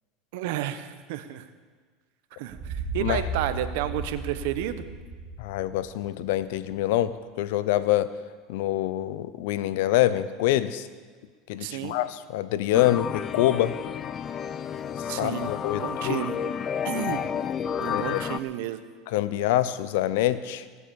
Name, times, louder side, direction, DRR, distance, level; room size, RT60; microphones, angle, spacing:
voice 1, 0.3-1.4 2.4-4.9 11.5-12.0 15.1-16.4 16.8-17.2 17.8-18.8, right 12 dB, 75° right, 11 dB, 1.0 m, -31 dB
sound 1, 2.5-6.4, right 2 dB, 40° right, 3.0 m, -35 dB
voice 2, 5.4-7.1 7.4-8.1 8.5-10.9 11.5-13.7 15.0-16.2 17.9-18.3 19.1-20.7, left 14 dB, 80° left, 14 dB, 0.7 m, -25 dB
sound 2, 12.7-18.4, left 8 dB, 35° left, 0.6 m, -31 dB
17.5 x 8.4 x 7.0 m, 1.5 s
supercardioid pair, 115°, 0 cm